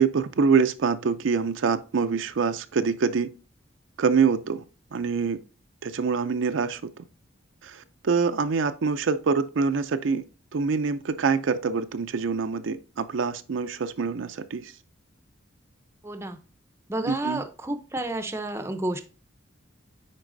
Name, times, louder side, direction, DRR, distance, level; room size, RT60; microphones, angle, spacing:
voice 1, 0.0-3.3 4.0-4.6 4.9-5.4 5.8-6.8 7.6-10.2 10.5-14.7 17.1-17.4, right 5 dB, 70° right, 0.5 m, -25 dB
voice 2, 16.0-16.4 16.9-19.0, right 1 dB, 15° right, 0.6 m, -30 dB
9.7 x 4.0 x 2.6 m
head